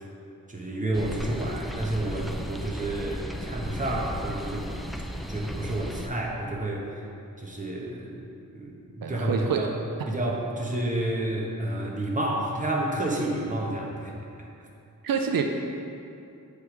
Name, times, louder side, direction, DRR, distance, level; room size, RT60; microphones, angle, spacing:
voice 1, 0.5-4.7 5.3-6.9 7.4-8.2 8.5-9.7 10.1-14.2, right 1 dB, 25° right, -2 dB, 1.0 m, -30 dB
sound 1, 0.9-6.1, equal, ahead, 0.3 m, -35 dB
voice 2, 9.0-9.7 15.0-15.4, right 6 dB, 90° right, 3 dB, 0.5 m, -26 dB
7.5 x 3.4 x 4.6 m, 2.6 s
wide cardioid pair, 65°, 33 cm